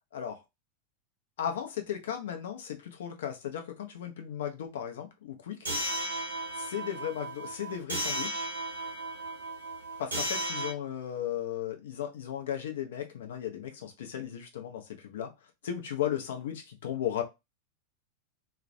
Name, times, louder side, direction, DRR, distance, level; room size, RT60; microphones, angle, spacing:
voice 1, 1.4-5.6 6.6-8.5 10.0-15.3 15.6-17.2, left 10 dB, 60° left, 0.6 m, -35 dB
sound 1, 5.7-10.7, right 1 dB, 70° right, 0.7 m, -35 dB
2.3 x 2.1 x 2.6 m
figure-of-eight pair, 90°, 0 cm